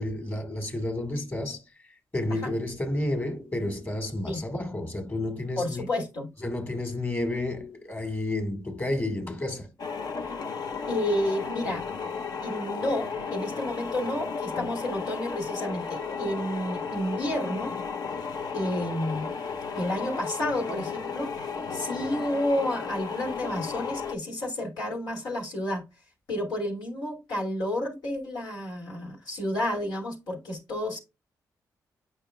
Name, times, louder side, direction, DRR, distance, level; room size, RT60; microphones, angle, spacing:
voice 1, 0.0-1.6 2.1-5.9 6.4-9.7, left 1 dB, 30° left, 1.8 m, -31 dB
voice 2, 5.6-6.3 10.9-11.8 12.4-17.8 18.5-19.4 19.7-21.3 21.7-25.8 26.3-31.0, left 1 dB, 90° left, 2.6 m, -30 dB
sound 1, 9.8-24.2, left 5 dB, 65° left, 0.9 m, -34 dB
8.8 x 5.6 x 2.3 m
cardioid pair, 70°, 7 cm